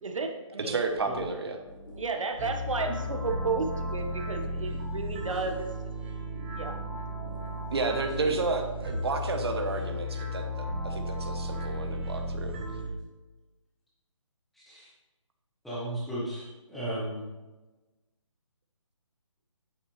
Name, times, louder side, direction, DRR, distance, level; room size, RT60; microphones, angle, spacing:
voice 1, 0.0-0.8 2.0-5.7 6.6-6.7, right 4 dB, 70° right, 4 dB, 1.4 m, -32 dB
voice 2, 0.6-1.6 7.7-12.5, right 3 dB, 50° right, 5 dB, 1.1 m, -31 dB
sound 1, 0.9-8.6, left 1 dB, 40° left, 1.2 m, -48 dB
sound 2, 2.4-12.9, equal, 20° right, 1.1 m, -35 dB
voice 3, 14.5-14.9 15.6-17.3, right 1 dB, ahead, -9 dB, 1.0 m, -35 dB
9.0 x 7.0 x 3.3 m, 1.2 s
hypercardioid pair, 170°, 17 cm